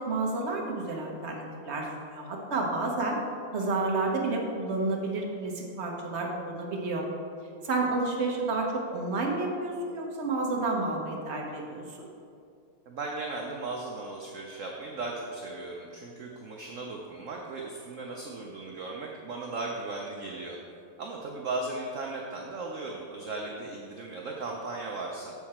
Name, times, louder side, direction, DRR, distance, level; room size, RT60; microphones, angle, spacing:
voice 1, 0.0-3.2 3.5-7.0 7.6-12.1, right 3 dB, 45° right, 0 dB, 1.1 m, -30 dB
voice 2, 12.9-20.6 21.0-25.3, right 3 dB, 65° right, 0 dB, 0.8 m, -37 dB
7.0 x 6.5 x 4.3 m, 2.5 s
omnidirectional pair, 2.1 m